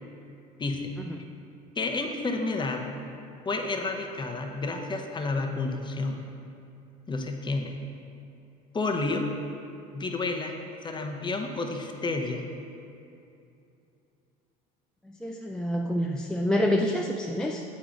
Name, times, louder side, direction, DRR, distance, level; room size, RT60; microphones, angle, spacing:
voice 1, 0.6-1.2 1.8-3.0 3.4-6.2 7.1-7.8 8.7-9.3 9.9-10.6 10.8-12.4, left 3 dB, 25° left, 3 dB, 0.8 m, -30 dB
voice 2, 15.1-17.6, left 1 dB, 5° left, 1 dB, 0.3 m, -27 dB
8.3 x 3.9 x 4.5 m, 2.7 s
supercardioid pair, 90°, 19 cm